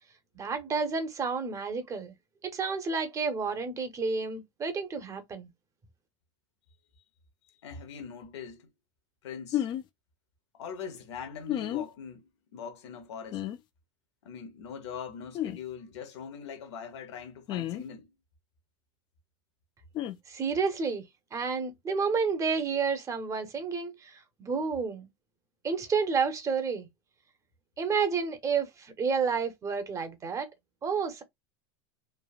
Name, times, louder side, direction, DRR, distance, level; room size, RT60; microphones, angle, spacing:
voice 1, 0.3-2.1 2.4-5.5 20.3-21.0 21.3-25.1 25.6-26.9 27.8-30.5 30.8-31.2, right 5 dB, 20° right, 0.7 m, -30 dB
voice 2, 7.6-8.7 9.2-9.7 10.5-13.5 14.2-18.1, left 6 dB, 90° left, 0.8 m, -42 dB
sound 1, 9.5-9.8 11.5-11.9 13.3-13.6 15.3-15.6 17.5-17.8 19.9-20.2, left 12 dB, 35° left, 0.4 m, -31 dB
3.2 x 2.1 x 2.3 m
supercardioid pair, 135°, 14 cm